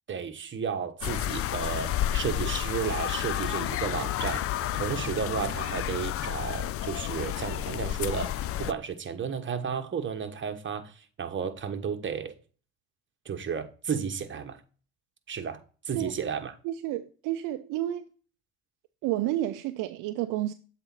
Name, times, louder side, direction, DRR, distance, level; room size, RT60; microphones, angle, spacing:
voice 1, 0.1-12.3 13.2-14.6 15.3-15.6 15.8-16.5, right 7 dB, 35° right, 1.2 m, -33 dB
sound 1, 1.0-8.7, left 12 dB, 40° left, 0.5 m, -31 dB
voice 2, 16.6-18.1 19.0-20.5, right 14 dB, 65° right, 0.6 m, -30 dB
7.9 x 4.2 x 4.1 m
hypercardioid pair, 65°, 35 cm